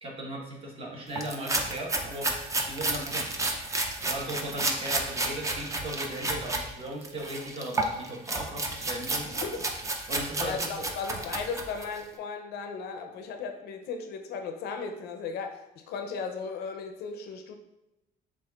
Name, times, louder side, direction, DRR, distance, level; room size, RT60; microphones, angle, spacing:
voice 1, 0.0-3.3 4.0-9.4 10.1-10.8, right 1 dB, 35° right, -2 dB, 1.2 m, -37 dB
sound 1, 1.1-6.6 7.0-12.0, right 2 dB, 20° right, 0.5 m, -31 dB
voice 2, 9.2-9.6 10.4-17.5, left 5 dB, 70° left, 5 dB, 0.5 m, -36 dB
7.2 x 2.5 x 2.3 m, 0.95 s
cardioid pair, 110°, 17 cm